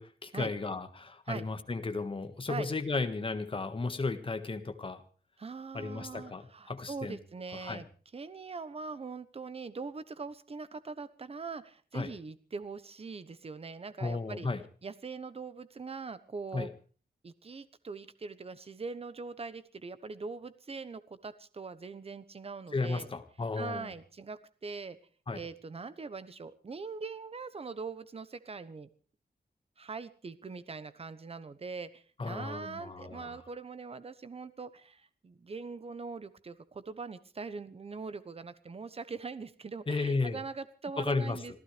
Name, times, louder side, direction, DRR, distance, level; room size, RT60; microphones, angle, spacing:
voice 1, 0.0-5.0 5.7-7.2 7.6-7.8 11.9-12.1 14.0-14.6 16.5-16.7 22.7-23.9 25.3-25.4 32.2-33.4 39.9-40.4 41.0-41.6, left 3 dB, 30° left, 8 dB, 1.6 m, -34 dB
voice 2, 5.4-7.9 8.1-14.5 14.8-16.7 17.2-23.1 23.5-25.0 25.3-28.9 29.8-41.6, right 4 dB, 35° right, 14 dB, 1.1 m, -42 dB
26.0 x 15.0 x 3.4 m, 0.40 s
wide cardioid pair, 160°, 17 cm